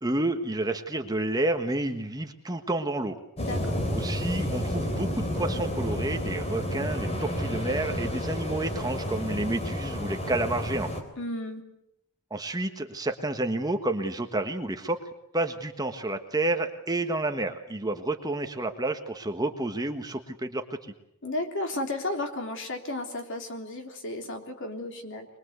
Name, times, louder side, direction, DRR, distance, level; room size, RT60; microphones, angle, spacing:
voice 1, 0.0-3.2 3.9-10.9 12.3-15.0 15.3-20.6, right 2 dB, 15° right, 6 dB, 1.4 m, -30 dB
voice 2, 3.4-3.8 11.2-11.6 21.2-25.3, left 2 dB, 55° left, 4 dB, 3.4 m, -33 dB
sound 1, 3.4-11.0, equal, 30° left, 3.6 m, -31 dB
24.0 x 21.5 x 8.1 m, 0.82 s
head